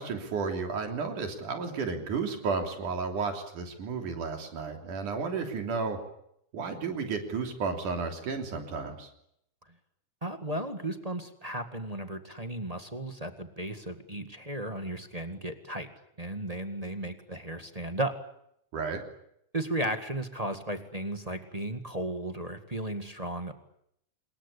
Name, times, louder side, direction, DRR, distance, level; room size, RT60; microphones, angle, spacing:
voice 1, 0.0-6.0 6.5-9.1 18.7-19.0, right 4 dB, 75° right, 5 dB, 4.8 m, -32 dB
voice 2, 10.2-15.9 16.2-18.1 19.5-23.5, right 1 dB, 15° right, 7 dB, 1.3 m, -35 dB
27.0 x 22.0 x 8.5 m, 0.75 s
omnidirectional pair, 3.6 m